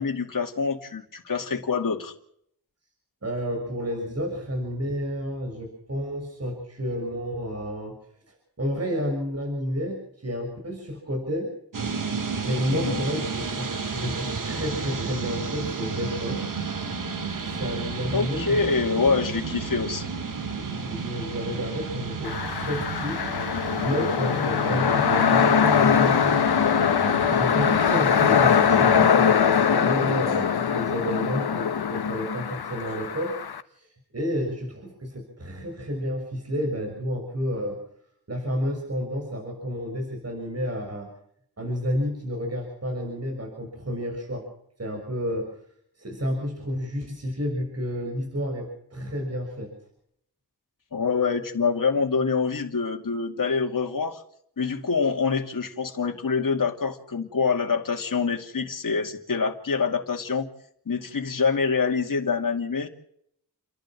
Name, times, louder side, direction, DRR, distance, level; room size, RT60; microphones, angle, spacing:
voice 1, 0.0-2.1 12.7-13.0 18.1-20.1 50.9-54.2 54.6-60.5 60.9-62.9, left 5 dB, 55° left, 2 dB, 2.6 m, -26 dB
voice 2, 3.2-8.0 8.3-11.5 12.4-16.4 17.4-18.6 20.5-23.2 23.8-26.4 27.3-33.4 33.7-33.9 34.1-37.8 38.3-41.1 41.6-44.5 44.8-45.5 46.0-49.7, equal, 40° right, 2 dB, 6.7 m, -30 dB
sound 1, 11.7-29.1, right 5 dB, 55° right, 2.1 m, -32 dB
sound 2, 22.2-33.6, left 7 dB, 75° left, 1.1 m, -22 dB
30.0 x 12.0 x 7.5 m, 0.70 s
wide cardioid pair, 95°, 38 cm